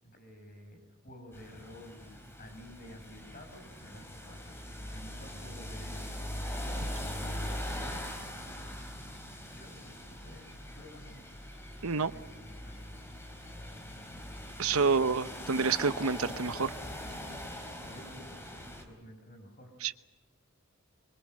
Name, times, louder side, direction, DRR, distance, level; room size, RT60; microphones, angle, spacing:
voice 1, 0.0-6.3 7.1-8.4 9.4-11.3 12.0-12.9 14.8-15.4 17.8-18.6 18.9-19.7, equal, 40° left, 5 dB, 5.9 m, -52 dB
sound 1, 1.3-18.8, left 1 dB, 10° left, 3.9 m, -41 dB
voice 2, 14.6-16.7 19.8-19.9, right 5 dB, 85° right, 12 dB, 1.0 m, -28 dB
25.5 x 24.5 x 7.8 m, 1.1 s
head